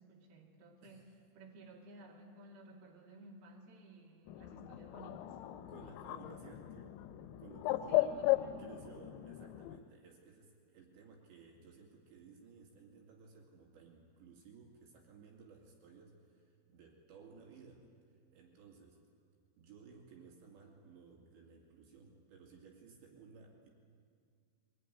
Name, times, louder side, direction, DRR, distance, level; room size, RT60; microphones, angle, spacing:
voice 1, 0.0-5.4 7.9-8.8, right 2 dB, 60° right, -1 dB, 4.3 m, -56 dB
Bird, 4.3-9.8, left 15 dB, 85° left, 3.1 m, -36 dB
voice 2, 5.7-7.0 7.4-8.2 8.6-17.9 18.3-19.0 19.6-23.7, right 5 dB, 75° right, 0 dB, 4.6 m, -58 dB
22.5 x 19.5 x 9.8 m, 2.2 s
omnidirectional pair, 5.2 m